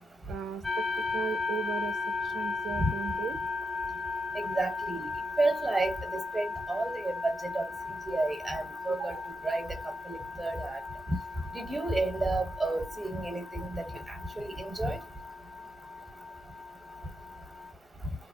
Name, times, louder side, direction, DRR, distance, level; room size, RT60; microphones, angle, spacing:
voice 1, 0.3-0.8 1.1-3.4 8.9-9.2, right 7 dB, 65° right, 0.5 m, -37 dB
sound 1, 0.6-17.7, left 4 dB, 15° left, 0.5 m, -37 dB
voice 2, 4.3-5.1 5.4-7.7 8.1-9.1 9.4-9.7 10.1-10.8 11.5-15.0, right 2 dB, 15° right, 1.1 m, -31 dB
3.1 x 2.0 x 2.6 m
cardioid pair, 90°, 0 cm